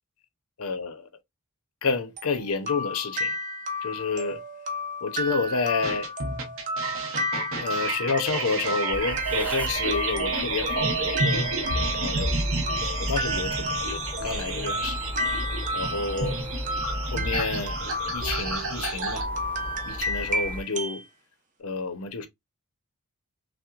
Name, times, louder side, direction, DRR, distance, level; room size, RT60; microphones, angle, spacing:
voice 1, 0.6-1.1 1.8-3.4 3.8-4.4 5.0-6.1 7.6-12.4 13.0-15.0 15.7-16.4 17.1-17.8 18.1-19.3 19.9-21.0 21.6-22.3, left 4 dB, 70° left, 0.7 m, -30 dB
sound 1, 2.2-21.0, left 1 dB, 35° right, 0.6 m, -33 dB
sound 2, 5.8-19.2, right 3 dB, 60° right, 0.9 m, -30 dB
sound 3, 8.9-20.6, left 1 dB, 5° left, 0.3 m, -36 dB
5.7 x 2.1 x 2.4 m
head